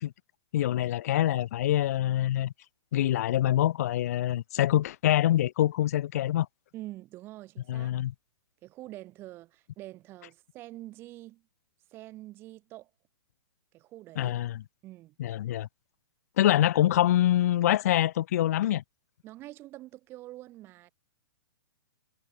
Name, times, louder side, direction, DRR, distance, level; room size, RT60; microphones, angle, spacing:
voice 1, 0.5-2.5 2.9-6.5 7.7-8.1 14.2-14.6 15.2-15.7 16.4-18.8, left 13 dB, 35° left, 0.4 m, -25 dB
voice 2, 6.7-7.9 8.6-11.4 11.9-12.9 13.7-14.4 14.8-15.1 16.4-16.6 16.9-17.0 19.2-20.9, right 16 dB, 15° right, 1.2 m, -45 dB
hypercardioid pair, 175°, 14 cm